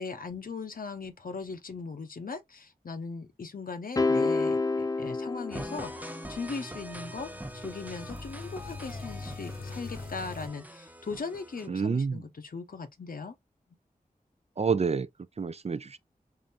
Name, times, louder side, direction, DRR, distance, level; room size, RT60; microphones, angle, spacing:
voice 1, 0.0-13.3, left 4 dB, 70° left, 0.7 m, -39 dB
sound 1, 4.0-6.4, left 3 dB, 25° left, 0.3 m, -28 dB
sound 2, 5.5-11.7, equal, 10° right, 0.6 m, -43 dB
sound 3, 6.6-10.5, left 4 dB, 85° left, 1.0 m, -43 dB
voice 2, 11.7-12.2 14.6-15.1 15.4-16.0, right 5 dB, 45° right, 0.4 m, -28 dB
3.8 x 3.3 x 2.6 m
wide cardioid pair, 50°, 15 cm